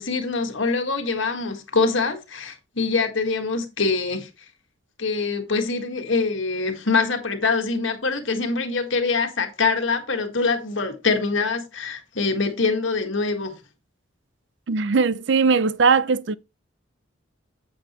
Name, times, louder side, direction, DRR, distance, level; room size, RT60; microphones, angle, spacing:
voice 1, 0.0-4.3 5.0-13.5, left 4 dB, 75° left, 1.7 m, -24 dB
voice 2, 14.7-16.3, right 5 dB, 65° right, 0.5 m, -19 dB
8.9 x 7.9 x 3.1 m
head